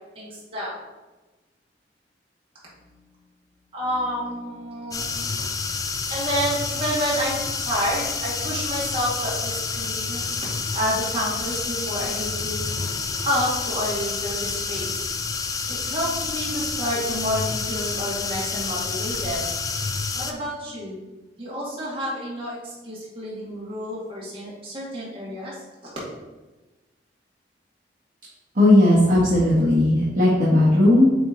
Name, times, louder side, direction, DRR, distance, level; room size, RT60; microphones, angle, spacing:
voice 1, 0.2-0.8 2.7-3.0 3.7-5.3 6.1-10.2 10.7-12.9 13.2-15.0 15.7-19.4 20.1-21.0 21.4-25.6, equal, 30° right, -6 dB, 2.1 m, -29 dB
sound 1, 4.9-20.3, left 4 dB, 20° left, 0.4 m, -29 dB
voice 2, 28.5-31.1, left 1 dB, 50° right, -9 dB, 1.4 m, -16 dB
8.1 x 3.2 x 3.9 m, 1.2 s
head